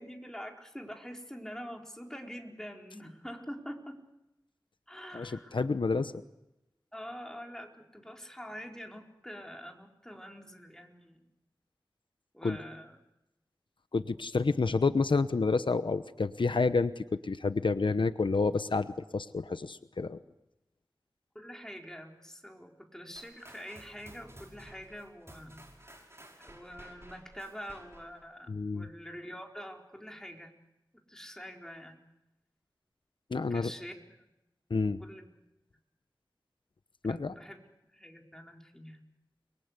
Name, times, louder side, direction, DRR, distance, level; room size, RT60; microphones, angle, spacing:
voice 1, 0.0-4.0 4.9-5.7 6.9-11.3 12.3-13.0 21.3-26.1 26.4-30.6 31.1-32.0 33.3-34.1 35.0-35.3 37.0-37.6 37.9-39.0, equal, 5° left, 2 dB, 4.3 m, -45 dB
voice 2, 5.1-6.1 12.4-12.6 13.9-20.2 28.5-28.9 33.3-33.7 34.7-35.0 37.0-37.3, left 4 dB, 85° left, 12 dB, 0.9 m, -29 dB
sound 1, 23.2-28.2, right 1 dB, 35° right, 5.9 m, -54 dB
30.0 x 22.5 x 8.2 m, 0.90 s
wide cardioid pair, 55°, 8 cm